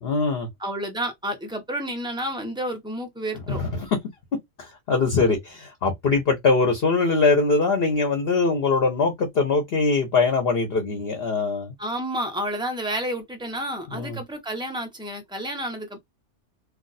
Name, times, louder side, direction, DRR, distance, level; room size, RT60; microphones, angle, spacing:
voice 1, 0.0-0.5 3.3-4.0 4.6-11.7 13.9-14.2, left 4 dB, 50° left, 0.9 m, -22 dB
voice 2, 0.6-3.6 11.8-16.0, right 1 dB, 5° right, 0.5 m, -30 dB
2.4 x 2.3 x 3.9 m
omnidirectional pair, 1.5 m